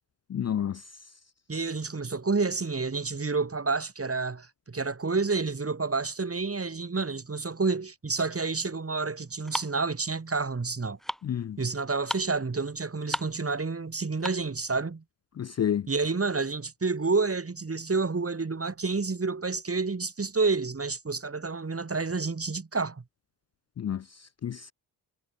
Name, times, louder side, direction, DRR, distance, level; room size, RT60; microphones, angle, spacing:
voice 1, 0.3-0.8 11.2-11.6 15.4-15.9 23.8-24.7, left 9 dB, 35° left, 0.5 m, -30 dB
voice 2, 1.5-11.0 11.6-15.0 15.9-23.0, right 4 dB, 30° right, 2.5 m, -29 dB
sound 1, 8.3-14.6, equal, ahead, 2.5 m, -38 dB
supercardioid pair, 50°, 46 cm